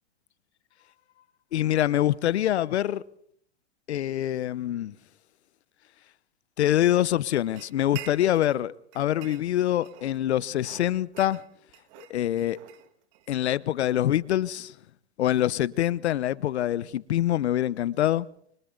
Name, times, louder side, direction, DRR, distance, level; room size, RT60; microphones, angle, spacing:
voice 1, 1.5-3.0 3.9-4.9 6.6-11.4 12.0-12.6 13.3-14.7 15.2-18.3, left 12 dB, 80° left, 1.0 m, -25 dB
sound 1, 7.6-8.6 8.9-10.2 10.6-13.3, right 13 dB, 45° right, 1.8 m, -46 dB
29.5 x 24.5 x 4.0 m
hypercardioid pair, 135°, 33 cm